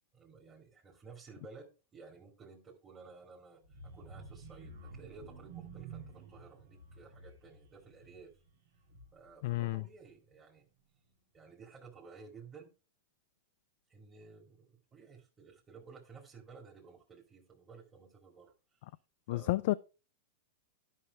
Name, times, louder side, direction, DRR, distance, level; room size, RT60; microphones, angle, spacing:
voice 1, 0.1-8.3 9.1-10.7 11.3-12.7 13.9-18.9 19.3-19.6, right 4 dB, 20° right, 2.1 m, -55 dB
sound 1, 3.6-9.4 9.8-10.0 10.4-10.5, right 4 dB, 80° right, 2.4 m, -51 dB
voice 2, 9.4-9.8 19.3-19.7, left 18 dB, 60° left, 0.3 m, -31 dB
11.0 x 5.6 x 3.5 m
hypercardioid pair, 120°, 0 cm